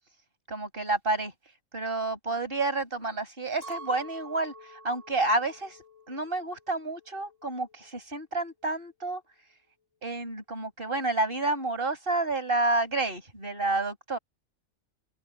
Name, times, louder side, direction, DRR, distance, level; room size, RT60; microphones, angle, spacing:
voice 1, 0.5-1.3 1.7-4.5 4.8-5.8 6.1-9.2 10.0-14.2, right 2 dB, 40° right, 5.6 m, -29 dB
Chink clink, 3.6-9.0, right 1 dB, 45° left, 7.8 m, -49 dB
omnidirectional pair, 1.4 m